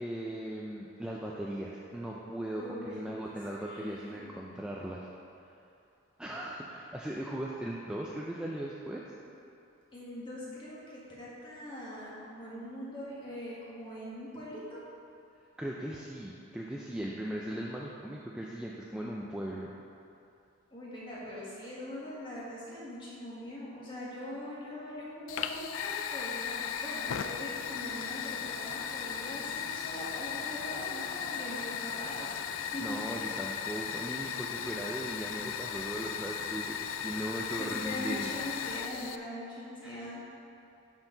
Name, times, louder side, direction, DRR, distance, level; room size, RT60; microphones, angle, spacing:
voice 1, 0.0-5.1 6.2-9.0 15.6-19.7 32.8-38.3 39.8-40.1, right 1 dB, 5° right, -4 dB, 0.4 m, -38 dB
voice 2, 2.6-3.0 3.2-4.3 9.9-14.8 20.7-32.4 32.7-33.3 37.6-40.2, left 1 dB, 25° left, -7 dB, 1.7 m, -42 dB
Fire, 25.3-39.2, left 8 dB, 75° left, 0.3 m, -36 dB
11.5 x 4.5 x 3.9 m, 2.7 s
head